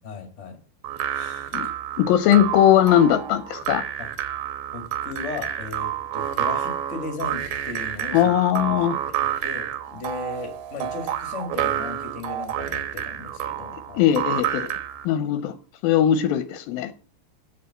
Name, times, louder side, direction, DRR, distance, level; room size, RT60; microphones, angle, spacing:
voice 1, 0.0-0.6 1.1-1.5 4.0-4.1 4.7-8.3 8.7-14.1, left 4 dB, 35° left, 1.2 m, -36 dB
sound 1, 0.8-15.1, right 10 dB, 70° right, 2.4 m, -29 dB
voice 2, 2.0-3.8 8.1-9.0 14.0-14.7 15.1-15.5 15.8-16.9, left 10 dB, 80° left, 2.2 m, -19 dB
8.6 x 6.7 x 7.8 m
omnidirectional pair, 4.6 m